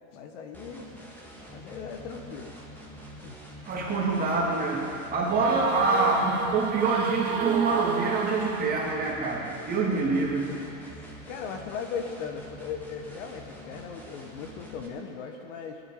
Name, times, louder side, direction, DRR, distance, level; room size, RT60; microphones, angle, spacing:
voice 1, 0.1-1.0 1.5-2.5 3.2-3.4 9.9-10.0 10.6-15.8, left 6 dB, 60° left, 4 dB, 1.5 m, -38 dB
sound 1, 0.5-14.9, equal, 5° left, 1.8 m, -46 dB
voice 2, 3.7-10.5, right 3 dB, 20° right, -3 dB, 2.6 m, -26 dB
sound 2, 5.3-9.1, right 7 dB, 55° right, 1.4 m, -31 dB
18.0 x 12.0 x 5.0 m, 2.9 s
supercardioid pair, 140°, 41 cm